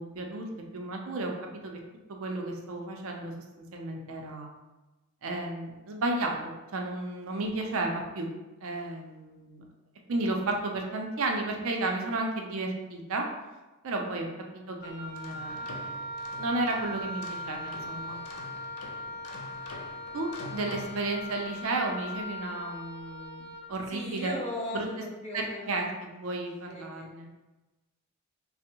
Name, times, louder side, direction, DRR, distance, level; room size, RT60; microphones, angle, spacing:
voice 1, 0.0-1.3 1.6-1.8 2.1-4.5 5.2-6.4 6.7-8.3 8.6-9.6 10.1-13.2 13.8-14.3 14.5-15.8 16.4-18.2 20.1-24.3 24.7-24.9 25.3-27.3, right 2 dB, 65° right, 2 dB, 0.4 m, -33 dB
Wind instrument woodwind instrument, 14.8-23.7, left 1 dB, 55° left, 1.1 m, -39 dB
sound 1, 15.0-21.7, left 3 dB, 75° left, 0.4 m, -46 dB
voice 2, 23.9-25.9 26.7-27.1, left 1 dB, 30° left, -3 dB, 0.6 m, -38 dB
3.3 x 2.0 x 2.9 m, 1.1 s
head